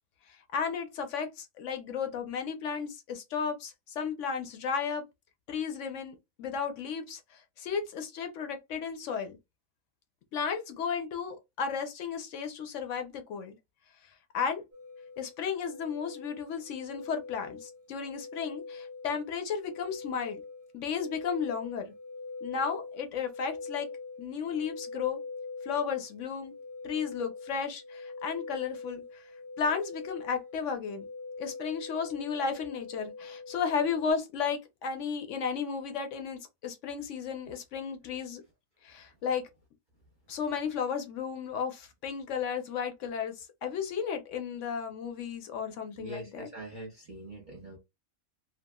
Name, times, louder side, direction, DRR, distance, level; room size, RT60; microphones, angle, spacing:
voice 1, 0.3-5.0 5.5-9.4 10.3-13.6 14.3-14.6 15.2-20.4 20.7-21.9 22.4-23.9 24.2-25.2 25.6-26.5 26.8-29.3 29.6-31.1 31.4-38.4 38.8-39.4 40.3-46.5, left 6 dB, 65° left, 0.9 m, -34 dB
sound 1, 14.7-34.1, left 4 dB, 15° right, 0.5 m, -44 dB
voice 2, 46.0-47.8, right 1 dB, 40° right, 0.8 m, -43 dB
2.9 x 2.4 x 2.2 m
omnidirectional pair, 1.5 m